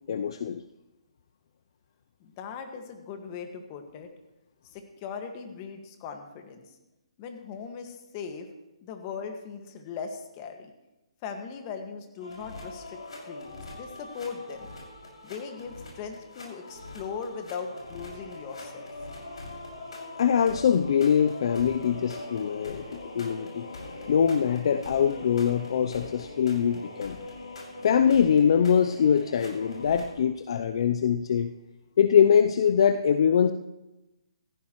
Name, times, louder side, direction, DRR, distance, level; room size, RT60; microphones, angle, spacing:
voice 1, 0.1-0.6 20.2-23.7 24.1-27.2 27.8-31.5 32.0-33.5, left 7 dB, 55° left, 10 dB, 0.6 m, -23 dB
voice 2, 2.2-4.1 4.7-6.6 7.2-8.5 8.8-10.7 11.2-13.0 13.2-14.7 15.2-18.9, left 6 dB, 30° left, 5 dB, 1.8 m, -39 dB
sound 1, 12.2-30.1, left 2 dB, 75° left, 6.0 m, -42 dB
16.5 x 14.5 x 3.1 m, 1.0 s
hypercardioid pair, 150°, 3 cm